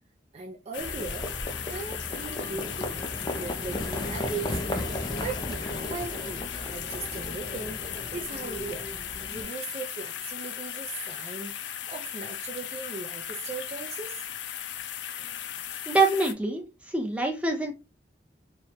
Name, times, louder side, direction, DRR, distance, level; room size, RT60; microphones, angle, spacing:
voice 1, 0.3-1.3 1.7-2.9 3.4-4.9 5.2-8.9 9.3-14.2, right 4 dB, 35° right, 0.4 m, -38 dB
sound 1, 0.7-16.3, left 10 dB, 85° left, 0.4 m, -37 dB
Livestock farm animals working animals, 0.8-9.4, left 1 dB, 25° left, 0.5 m, -35 dB
voice 2, 15.9-17.7, right 3 dB, 5° right, 0.8 m, -25 dB
2.9 x 2.3 x 4.1 m
head